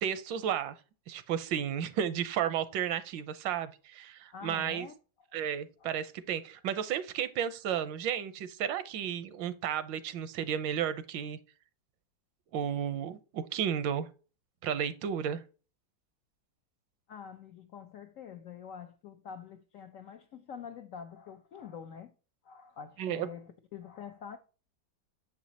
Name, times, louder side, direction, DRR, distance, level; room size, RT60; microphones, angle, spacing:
voice 1, 0.0-0.8 1.1-4.9 5.3-11.4 12.5-14.1 14.6-15.4 23.0-23.3, right 9 dB, 80° right, 1.3 m, -33 dB
voice 2, 4.3-4.9 5.3-5.4 5.8-6.0 17.1-22.1 22.4-24.4, left 7 dB, 75° left, 0.7 m, -46 dB
7.0 x 5.1 x 2.7 m
omnidirectional pair, 2.0 m